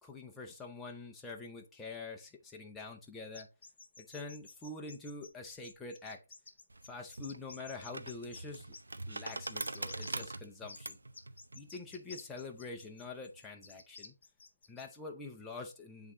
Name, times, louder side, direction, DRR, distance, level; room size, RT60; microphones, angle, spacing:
voice 1, 0.0-3.5 4.0-6.2 6.8-8.8 9.1-11.0 11.5-14.1 14.7-16.1, left 3 dB, 5° left, 0.6 m, -46 dB
sound 1, 3.3-8.8 9.3-10.3 10.7-14.8, left 4 dB, 50° left, 1.4 m, -52 dB
sound 2, 6.7-13.4, right 2 dB, 90° right, 0.7 m, -44 dB
8.0 x 3.7 x 3.7 m
hypercardioid pair, 170°, 0 cm